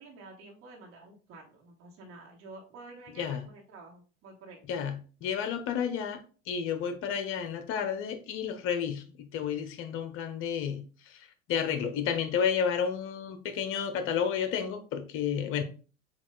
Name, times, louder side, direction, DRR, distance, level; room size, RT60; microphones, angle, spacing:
voice 1, 0.0-4.6, right 3 dB, 40° right, 1.2 m, -50 dB
voice 2, 4.7-6.2 6.5-15.6, left 7 dB, 40° left, 0.7 m, -31 dB
7.1 x 2.4 x 2.3 m
figure-of-eight pair, 80°, 35 cm